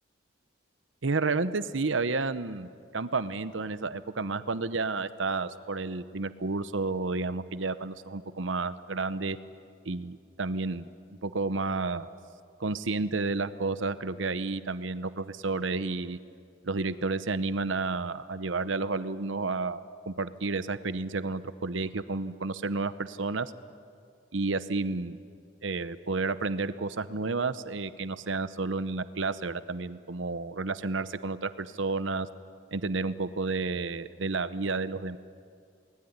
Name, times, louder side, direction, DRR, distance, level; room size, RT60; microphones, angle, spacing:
voice 1, 1.0-2.7 2.9-9.4 9.9-10.9 11.2-12.1 12.6-16.2 16.6-23.5 24.3-25.2 25.6-32.3 32.7-35.2, right 3 dB, 85° right, 14 dB, 0.9 m, -31 dB
29.0 x 20.0 x 9.5 m, 2.3 s
head